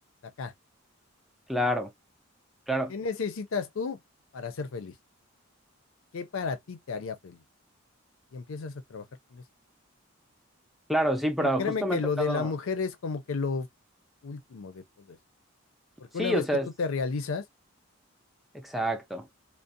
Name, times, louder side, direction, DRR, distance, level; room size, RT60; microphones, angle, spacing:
voice 1, 0.2-0.5 2.9-4.0 4.3-4.9 6.1-7.4 8.3-9.1 9.3-9.4 11.4-13.7 14.2-15.2 16.0-16.4 16.8-17.5, left 5 dB, 70° left, 0.5 m, -32 dB
voice 2, 1.5-1.9 2.7-2.9 10.9-12.5 16.2-16.7 18.5-19.3, equal, ahead, 0.4 m, -27 dB
2.5 x 2.0 x 2.6 m
head